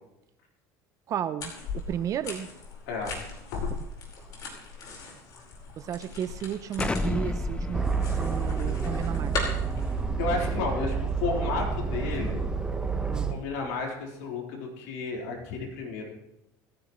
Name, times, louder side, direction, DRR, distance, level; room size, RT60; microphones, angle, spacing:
voice 1, 1.1-2.5 5.8-9.6 13.1-13.4, right 9 dB, 45° right, 12 dB, 0.6 m, -34 dB
sound 1, 1.4-10.0, left 4 dB, 50° left, 4.8 m, -38 dB
voice 2, 2.9-3.2 3.5-3.6 10.2-12.4 13.3-16.1, left 4 dB, 90° left, -1 dB, 4.2 m, -32 dB
Explosion, 6.8-11.5, left 2 dB, 15° left, 0.7 m, -34 dB
Aircraft, 7.7-13.3, right 5 dB, 10° right, 1.2 m, -29 dB
28.0 x 9.8 x 3.2 m, 0.88 s
supercardioid pair, 120°, 8 cm